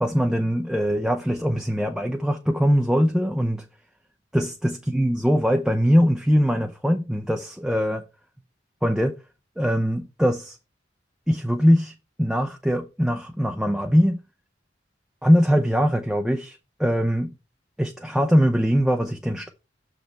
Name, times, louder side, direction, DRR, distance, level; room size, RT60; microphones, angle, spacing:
voice 1, 0.0-3.6 4.3-8.0 8.8-9.2 9.6-10.6 11.3-14.2 15.2-17.3 17.8-19.5, equal, 5° right, 0.5 m, -22 dB
6.7 x 5.1 x 4.4 m
head